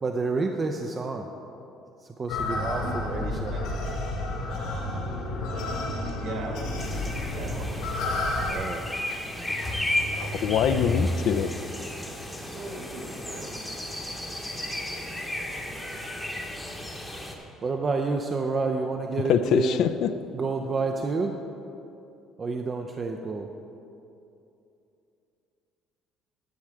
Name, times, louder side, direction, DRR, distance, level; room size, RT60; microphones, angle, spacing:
voice 1, 0.0-1.3 2.2-3.5 8.5-8.9 17.6-19.8 20.3-21.4 22.4-23.5, right 3 dB, 20° right, 4 dB, 0.4 m, -29 dB
sound 1, 2.3-8.5, left 2 dB, 80° left, 2.2 m, -30 dB
voice 2, 2.7-3.6 6.1-7.7 12.5-14.4, right 2 dB, 60° right, 0 dB, 1.8 m, -40 dB
sound 2, 6.8-17.3, left 1 dB, 5° left, 0.9 m, -33 dB
voice 3, 10.2-11.5 19.2-20.1, left 8 dB, 55° left, 10 dB, 0.4 m, -24 dB
10.5 x 4.7 x 7.6 m, 2.7 s
cardioid pair, 175°, 0 cm